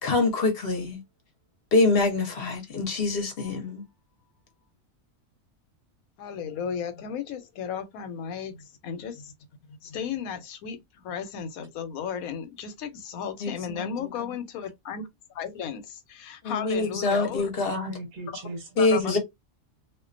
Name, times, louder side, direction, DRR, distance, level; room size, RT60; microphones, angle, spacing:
voice 1, 0.0-1.0 1.7-3.8 13.4-13.9 16.4-17.9 18.8-19.2, left 3 dB, 55° left, 0.7 m, -25 dB
voice 2, 6.2-9.3 9.7-15.1 15.3-17.5 18.3-18.4 18.8-19.2, left 7 dB, 90° left, 1.0 m, -35 dB
voice 3, 17.8-19.2, right 1 dB, 45° right, 0.7 m, -39 dB
2.4 x 2.2 x 2.4 m
omnidirectional pair, 1.5 m